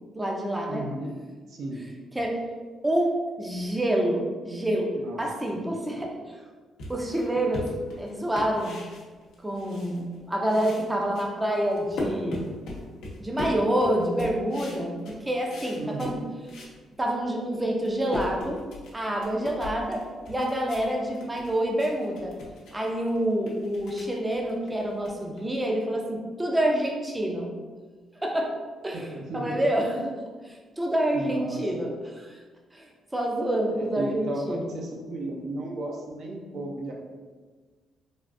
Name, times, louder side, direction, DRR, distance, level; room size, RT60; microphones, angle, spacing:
voice 1, 0.1-0.8 2.1-2.4 2.8-4.9 5.2-6.4 6.9-7.7 8.0-8.8 9.4-12.5 13.2-16.2 17.0-18.6 18.9-22.3 22.7-27.5 28.2-28.5 28.8-29.9 30.8-31.9 32.7-34.7, right 1 dB, 15° right, 0 dB, 0.5 m, -27 dB
voice 2, 0.7-1.2 1.5-1.9 4.9-5.2 5.5-5.6 15.8-16.3 28.9-29.6 29.9-30.1 31.1-31.9 33.7-36.9, right 2 dB, 65° right, -1 dB, 0.5 m, -35 dB
sound 1, 6.8-10.2 10.4-16.8 17.2-17.3 17.7-25.8, left 2 dB, 80° left, 0.7 m, -39 dB
3.4 x 2.4 x 2.5 m, 1.4 s
cardioid pair, 90°, 0 cm